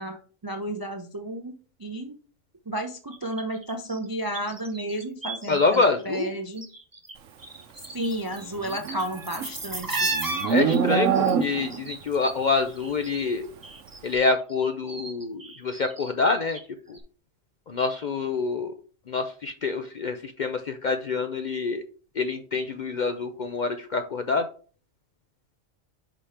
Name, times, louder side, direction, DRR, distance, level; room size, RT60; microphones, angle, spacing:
voice 1, 0.0-1.5 1.8-2.1 2.7-6.7 7.9-10.1, right 1 dB, 35° right, 5 dB, 0.3 m, -32 dB
sound 1, 3.1-5.9 6.1-7.1 7.4-13.3 13.6-16.7 16.9-17.0, right 2 dB, 20° right, 0.7 m, -35 dB
voice 2, 5.5-6.3 10.5-13.5 14.0-16.6 16.9-17.0 17.7-18.7 19.1-21.8 22.2-24.4, left 4 dB, 55° left, 7 dB, 0.5 m, -26 dB
Livestock farm animals working animals, 8.6-11.9, right 7 dB, 75° right, 1.1 m, -25 dB
5.2 x 5.0 x 4.2 m, 0.40 s
omnidirectional pair, 1.3 m